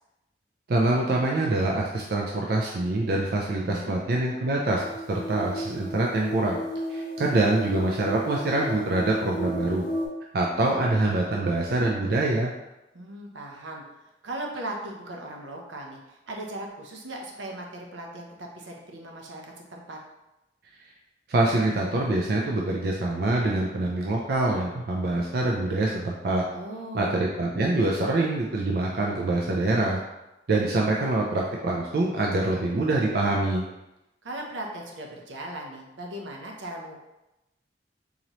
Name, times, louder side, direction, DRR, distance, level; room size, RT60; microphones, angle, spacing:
voice 1, 0.7-4.8 5.1-6.6 6.9-9.9 10.3-12.5 21.3-26.4 26.9-30.0 30.5-33.7, right 2 dB, 55° right, -2 dB, 0.4 m, -25 dB
voice 2, 3.5-4.0 12.9-13.8 14.2-20.0 26.5-27.2 34.2-37.0, right 1 dB, 80° right, 0 dB, 0.7 m, -38 dB
sound 1, 4.8-10.1, right 1 dB, 25° left, 0.8 m, -34 dB
3.9 x 2.9 x 3.0 m, 0.94 s
head